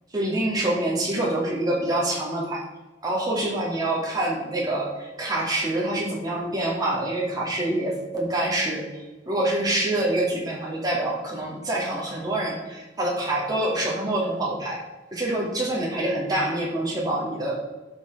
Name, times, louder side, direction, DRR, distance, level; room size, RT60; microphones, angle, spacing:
voice 1, 0.1-2.6 3.0-8.9 9.3-14.8 15.1-17.6, right 1 dB, 20° right, -4 dB, 2.5 m, -26 dB
11.5 x 6.6 x 3.6 m, 1.1 s
head